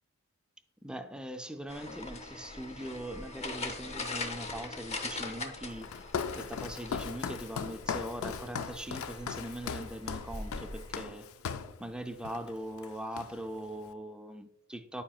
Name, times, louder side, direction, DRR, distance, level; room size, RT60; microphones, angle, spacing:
voice 1, 0.8-6.0 6.3-11.3 11.8-15.0, right 1 dB, 5° right, 0.3 m, -41 dB
sound 1, 1.7-11.1, left 2 dB, 30° left, 0.6 m, -42 dB
Walk footsteps, 5.8-11.8 12.2-12.5 12.8-13.6, left 6 dB, 70° left, 0.4 m, -38 dB
10.0 x 5.0 x 2.3 m
head